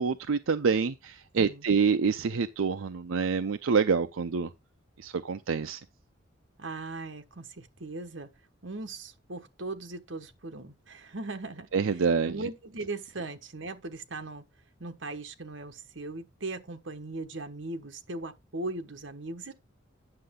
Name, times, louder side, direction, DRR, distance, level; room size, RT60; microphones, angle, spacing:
voice 1, 0.0-4.5 5.0-5.8 11.7-12.5, right 5 dB, 85° right, 0.5 m, -27 dB
voice 2, 6.6-8.3 8.6-14.4 14.8-19.5, right 2 dB, 65° right, 1.3 m, -39 dB
9.7 x 6.6 x 3.7 m
head